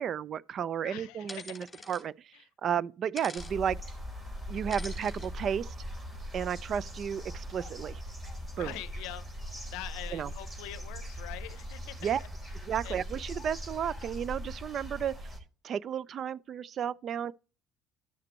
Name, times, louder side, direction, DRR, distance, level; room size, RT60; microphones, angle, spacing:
voice 1, 0.0-2.3 2.6-3.8 4.5-5.7 6.3-8.0 8.6-8.8 10.1-10.3 12.0-12.2 12.6-15.1 15.6-17.3, right 8 dB, 50° right, 0.4 m, -33 dB
voice 2, 0.8-1.4 1.7-1.8 2.3-2.4 8.6-9.2 9.7-12.3 12.8-13.0, left 15 dB, 75° left, 0.6 m, -43 dB
sound 1, 1.3-2.0 3.2-3.5 4.7-5.3, left 3 dB, 15° left, 3.2 m, -45 dB
sound 2, 3.4-15.4, equal, 30° right, 3.8 m, -41 dB
11.5 x 6.6 x 3.1 m
hypercardioid pair, 65°, 0 cm